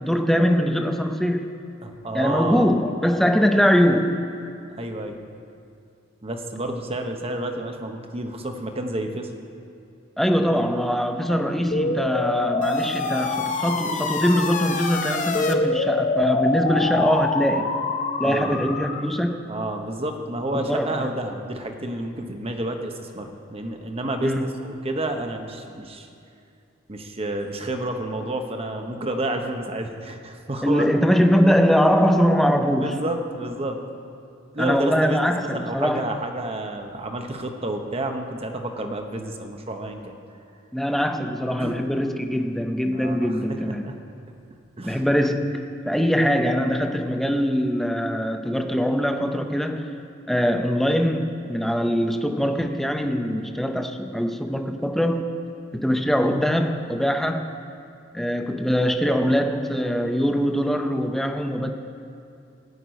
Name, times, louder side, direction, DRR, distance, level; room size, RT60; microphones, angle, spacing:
voice 1, 0.0-1.5 2.1-4.2 10.2-17.7 18.2-19.4 20.5-21.1 24.2-24.5 30.6-33.0 34.6-36.0 40.7-43.8 44.8-50.0 50.3-55.3 55.7-57.5 58.1-61.7, equal, ahead, 5 dB, 0.6 m, -22 dB
voice 2, 1.8-2.7 4.8-5.2 6.2-9.3 16.6-16.9 18.2-18.6 19.5-26.1 26.9-30.9 32.8-33.8 34.5-40.1 41.6-41.8 42.9-43.4 43.7-44.0 44.8-45.0 45.9-46.0, right 1 dB, 30° right, 4 dB, 1.0 m, -30 dB
sound 1, 11.7-19.2, left 3 dB, 40° left, 0.7 m, -25 dB
14.5 x 6.0 x 9.2 m, 2.5 s
head